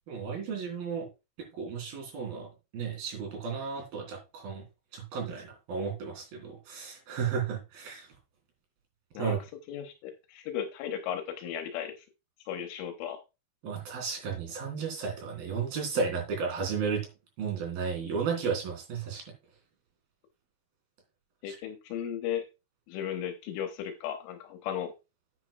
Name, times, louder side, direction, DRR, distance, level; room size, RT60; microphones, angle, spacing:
voice 1, 0.1-1.1 1.5-4.7 4.9-8.1 9.2-9.4 13.6-17.1 17.4-19.2 21.5-21.6, right 6 dB, 55° right, 2 dB, 4.8 m, -33 dB
voice 2, 9.7-12.0 12.5-13.2 21.4-22.4 22.9-24.9, left 9 dB, 80° left, 6 dB, 3.5 m, -35 dB
10.5 x 9.4 x 2.3 m, 0.26 s
omnidirectional pair, 5.5 m